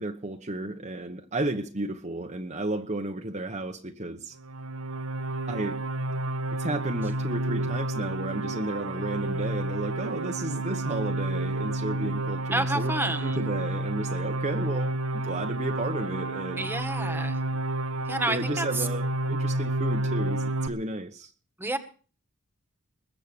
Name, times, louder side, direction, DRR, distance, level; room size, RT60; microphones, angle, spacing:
voice 1, 0.0-4.4 5.5-5.8 6.5-12.9 13.2-16.7 18.3-21.3, right 2 dB, 30° right, 4 dB, 1.0 m, -33 dB
sound 1, 4.4-20.7, right 2 dB, 70° right, 1.1 m, -30 dB
voice 2, 12.5-13.4 16.6-17.4 18.1-18.9 21.6-21.8, right 2 dB, 10° right, 8 dB, 1.6 m, -29 dB
21.5 x 7.6 x 6.8 m, 0.39 s
head